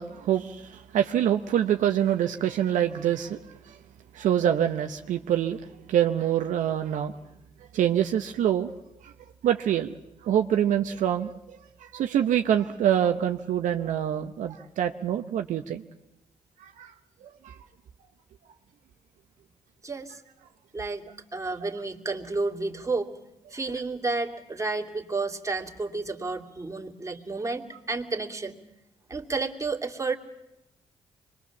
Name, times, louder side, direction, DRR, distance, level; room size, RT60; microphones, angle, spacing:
voice 1, 0.0-3.4 3.6-3.8 4.1-5.6 5.9-7.1 7.7-8.8 9.0-9.1 9.4-10.0 10.2-15.8 16.6-16.9 17.2-17.6, right 10 dB, 75° right, 6 dB, 0.8 m, -25 dB
voice 2, 19.8-20.2 20.7-21.0 21.3-23.1 23.5-28.6 29.1-30.2, right 3 dB, 25° right, 2 dB, 2.5 m, -31 dB
24.5 x 21.5 x 7.1 m, 0.91 s
supercardioid pair, 50°, 13 cm